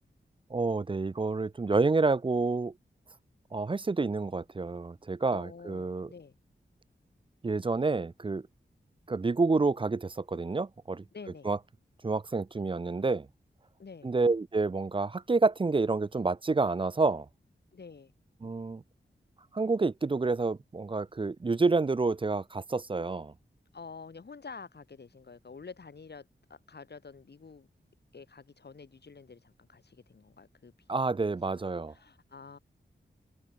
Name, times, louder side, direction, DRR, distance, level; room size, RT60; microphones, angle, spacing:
voice 1, 0.5-2.7 3.5-6.1 7.4-8.4 9.1-11.0 11.4-11.6 12.0-13.3 14.0-17.3 18.4-18.8 19.5-23.3 30.9-31.9, right 3 dB, 25° right, 0.4 m, -28 dB
voice 2, 5.3-6.4 11.1-11.5 13.8-14.1 17.7-18.1 23.7-27.7 28.1-31.3 31.9-32.6, left 5 dB, 60° left, 1.6 m, -48 dB
wide cardioid pair, 60°, 19 cm